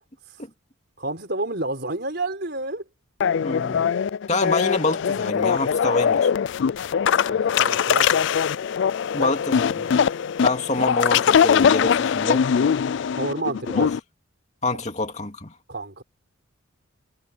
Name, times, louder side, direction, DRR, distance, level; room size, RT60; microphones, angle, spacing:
voice 1, 1.0-2.8 7.3-8.3 12.3-12.7 13.1-13.9 15.7-16.0, right 2 dB, 50° right, 4.6 m, -30 dB
sound 1, 3.2-14.0, left 7 dB, 55° left, 0.3 m, -21 dB
voice 2, 3.4-3.9 4.3-6.3 9.1-10.0 10.4-12.5 13.7-13.9 14.6-15.5, left 2 dB, 35° left, 2.6 m, -26 dB
head